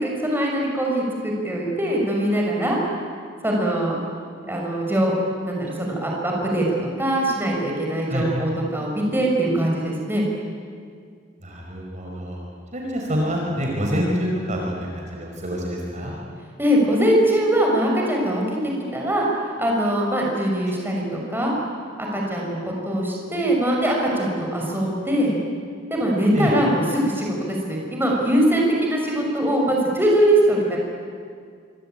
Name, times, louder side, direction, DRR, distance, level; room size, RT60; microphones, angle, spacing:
voice 1, 0.0-2.8 3.4-4.0 4.5-5.1 5.4-10.3 16.6-21.5 22.0-25.3 25.9-30.8, right 1 dB, 10° right, -2 dB, 6.2 m, -22 dB
voice 2, 11.4-12.4 12.7-16.1 26.3-26.5, equal, 35° right, -1 dB, 5.0 m, -26 dB
26.5 x 25.0 x 9.0 m, 2.1 s
head